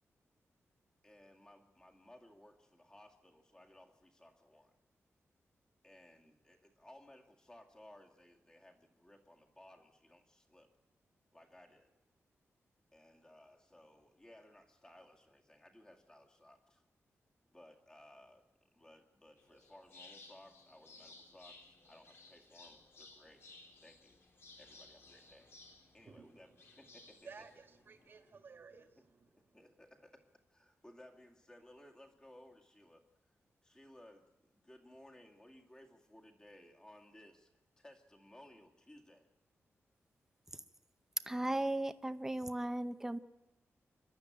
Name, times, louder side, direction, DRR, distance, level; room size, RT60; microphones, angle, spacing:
voice 1, 1.0-4.7 5.8-10.7 11.3-11.9 12.9-16.8 17.5-18.4 18.7-23.4 23.8-24.2 24.6-25.5 25.9-26.5 26.8-27.2 29.5-30.2 30.5-33.0 33.6-37.5 37.8-39.3, left 1 dB, 15° left, 2 dB, 2.1 m, -60 dB
sound 1, 19.4-28.3, left 3 dB, 50° left, 2.3 m, -59 dB
voice 2, 26.0-29.7, right 5 dB, 45° right, 6 dB, 1.6 m, -57 dB
voice 3, 41.3-43.2, right 1 dB, 10° right, 11 dB, 0.7 m, -36 dB
27.5 x 12.0 x 9.1 m, 1.0 s
wide cardioid pair, 175°, 5 cm